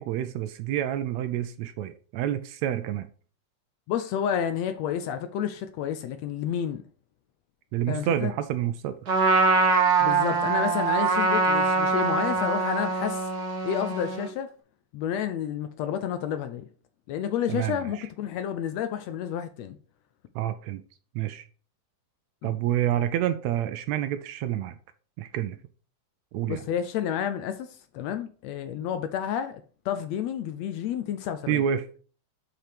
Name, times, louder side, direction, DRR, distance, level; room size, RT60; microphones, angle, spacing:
voice 1, 0.0-3.1 7.7-9.0 17.5-18.1 20.3-20.8 21.1-21.5 22.4-24.7 25.2-25.6 26.3-26.6 31.5-32.0, right 11 dB, 80° right, 1.7 m, -28 dB
voice 2, 3.9-6.8 7.9-8.3 10.0-13.3 13.6-14.5 14.9-16.7 17.1-19.8 22.4-22.6 26.5-27.7 27.9-31.6, left 9 dB, 75° left, 1.6 m, -30 dB
Trumpet, 9.1-14.3, right 4 dB, 50° right, 1.2 m, -23 dB
5.9 x 5.5 x 5.0 m
omnidirectional pair, 3.4 m